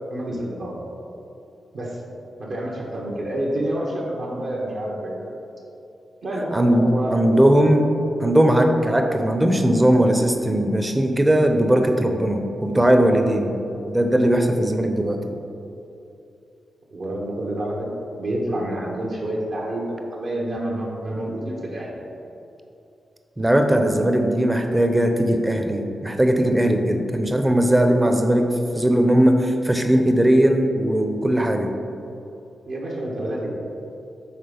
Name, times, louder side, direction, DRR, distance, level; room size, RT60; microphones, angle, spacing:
voice 1, 0.1-0.7 1.7-2.0 2.4-5.3 6.2-7.7 16.9-17.9 18.2-22.0 32.7-33.5, right 1 dB, 65° right, -4 dB, 1.1 m, -28 dB
voice 2, 6.5-7.9 8.2-13.6 13.9-15.2 23.4-28.5 28.7-31.8, right 1 dB, 15° right, 5 dB, 0.6 m, -19 dB
5.7 x 3.7 x 5.2 m, 2.8 s
cardioid pair, 65°, 0 cm